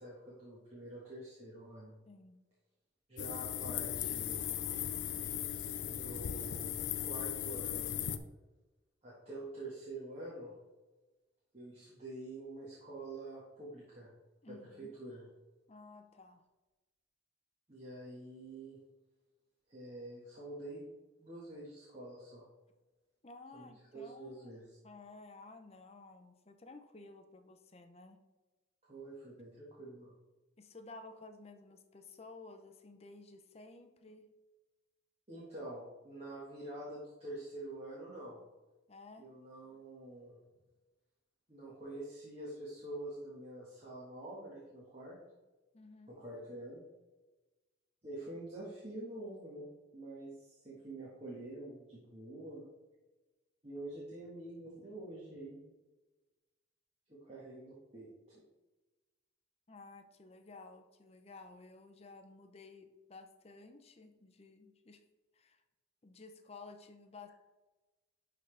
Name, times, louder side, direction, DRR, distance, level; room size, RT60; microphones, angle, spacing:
voice 1, 0.0-2.0 3.1-4.5 5.8-7.9 9.0-10.5 11.5-14.1 14.5-15.2 17.7-18.8 19.7-20.8 21.2-22.5 23.5-24.6 28.8-30.1 35.3-38.4 39.2-40.4 41.5-45.2 46.1-46.8 48.0-52.6 53.6-55.6 57.1-58.4, right 1 dB, 35° right, -7 dB, 1.6 m, -47 dB
voice 2, 2.1-2.4 14.4-15.0 15.7-16.4 23.2-28.2 30.6-34.3 38.9-39.3 45.7-46.2 59.7-65.0 65.3-65.6 66.0-67.3, left 3 dB, 35° left, 7 dB, 0.6 m, -54 dB
sound 1, 3.2-8.2, left 10 dB, 75° left, 0.4 m, -37 dB
11.0 x 3.9 x 3.4 m, 1.2 s
head